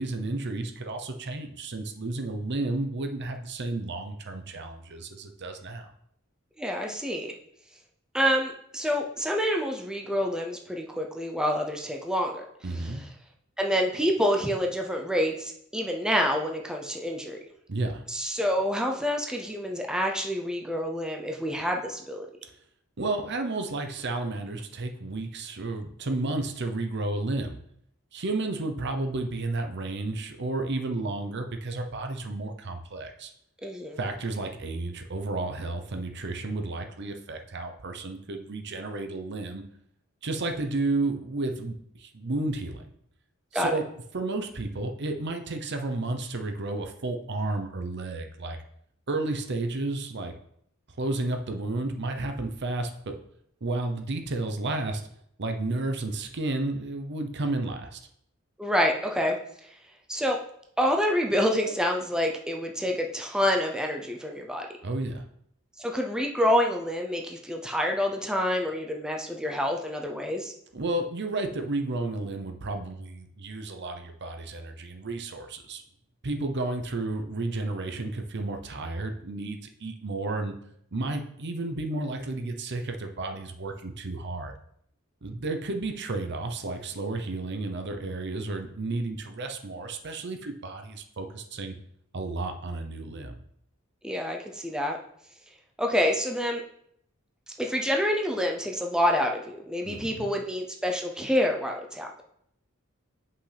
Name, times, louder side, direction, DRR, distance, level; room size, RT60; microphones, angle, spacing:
voice 1, 0.0-5.9 12.6-13.0 17.7-18.0 22.4-22.5 23.0-27.6 28.1-33.3 34.0-39.6 40.2-42.9 43.5-43.8 44.1-48.6 49.1-50.3 51.0-53.1 53.6-55.0 55.4-58.0 64.8-65.2 70.7-75.8 76.2-80.6 80.9-84.5 85.2-91.8 92.1-93.4 99.8-100.3, right 2 dB, 55° right, 5 dB, 0.8 m, -32 dB
voice 2, 6.6-7.3 8.1-12.5 12.8-12.9 13.6-17.4 18.1-22.3 33.6-34.0 43.5-43.7 58.6-59.4 60.1-60.4 60.8-64.7 65.8-70.5 94.0-95.0 95.8-96.6 97.6-102.1, equal, 5° right, 1 dB, 0.6 m, -27 dB
7.9 x 5.5 x 3.4 m, 0.71 s
head